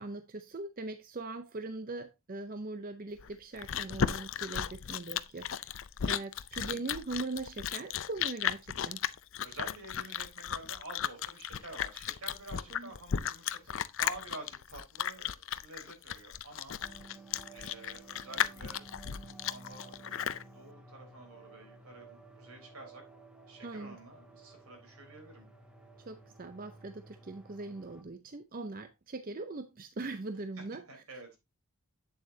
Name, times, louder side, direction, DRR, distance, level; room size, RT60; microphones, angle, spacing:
voice 1, 0.0-9.0 12.7-12.9 23.6-24.0 26.0-30.8 31.1-31.4, right 3 dB, 40° right, 0.6 m, -41 dB
Chewing mastication, 3.2-20.4, left 8 dB, 60° left, 0.5 m, -35 dB
voice 2, 9.4-16.8 17.5-23.0 23.5-25.5 30.9-31.4, right 2 dB, 80° right, 3.9 m, -49 dB
sound 1, 16.8-28.0, right 3 dB, 5° right, 1.0 m, -54 dB
8.6 x 7.4 x 2.7 m
head